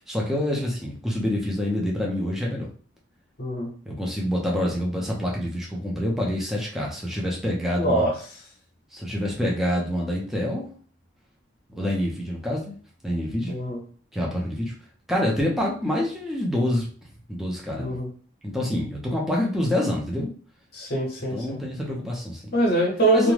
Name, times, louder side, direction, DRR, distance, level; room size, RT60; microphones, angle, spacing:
voice 1, 0.1-2.7 3.9-8.1 8.9-10.6 11.7-12.7 13.0-13.5 14.1-14.7 15.1-16.9 17.3-18.0 18.4-20.3 21.3-22.5 23.1-23.3, left 1 dB, ahead, -3 dB, 0.4 m, -26 dB
voice 2, 7.8-8.1 13.5-13.8 17.8-18.1 20.7-21.6 22.5-23.3, right 1 dB, 50° left, -3 dB, 0.7 m, -23 dB
2.4 x 2.0 x 3.1 m, 0.43 s
head